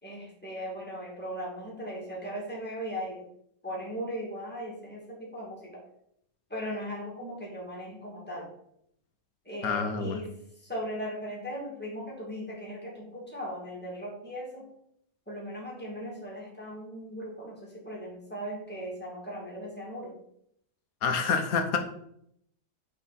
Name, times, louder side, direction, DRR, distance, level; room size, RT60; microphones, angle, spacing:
voice 1, 0.0-3.2 3.6-5.7 6.5-8.5 9.4-10.3 10.6-14.6 15.3-20.1, equal, 5° left, -4 dB, 2.4 m, -38 dB
voice 2, 9.6-10.2 21.0-21.8, left 5 dB, 60° left, 6 dB, 1.2 m, -27 dB
5.8 x 5.8 x 4.2 m, 0.72 s
omnidirectional pair, 1.9 m